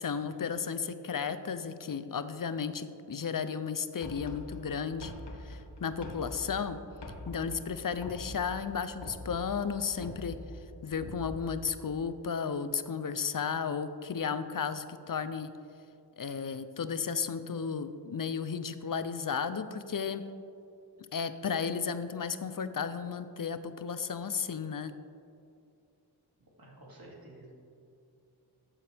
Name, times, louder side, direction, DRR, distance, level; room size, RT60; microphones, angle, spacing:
voice 1, 0.0-5.1 5.4-6.8 7.3-10.4 10.8-15.5 16.2-20.2 21.1-24.9, left 6 dB, 55° left, 11 dB, 0.5 m, -34 dB
sound 1, 4.0-11.8, left 1 dB, 75° left, 1.3 m, -45 dB
voice 2, 26.6-27.5, right 1 dB, 60° right, -4 dB, 2.6 m, -51 dB
13.0 x 7.4 x 3.4 m, 2.5 s
wide cardioid pair, 70°, 41 cm